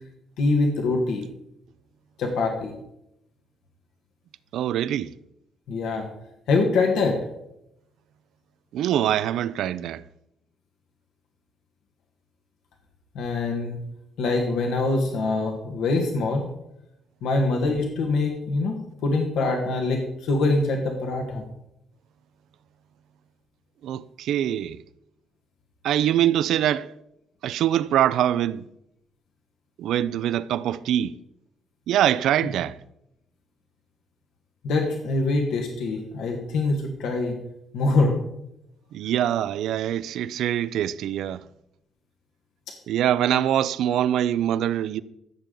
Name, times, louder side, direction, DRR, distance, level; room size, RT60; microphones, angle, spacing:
voice 1, 0.4-1.2 2.2-2.7 5.7-6.1 6.5-7.2 13.1-13.8 14.2-16.5 17.2-21.4 34.6-37.4 37.7-38.1 42.7-42.8, left 3 dB, 85° left, 1.4 m, -24 dB
voice 2, 4.5-5.1 8.7-10.0 23.8-24.8 25.8-26.9 27.4-28.6 29.8-31.1 31.9-32.8 38.9-41.4 42.9-45.0, right 11 dB, 80° right, 0.4 m, -24 dB
14.5 x 6.8 x 3.8 m
cardioid pair, 90°, 0 cm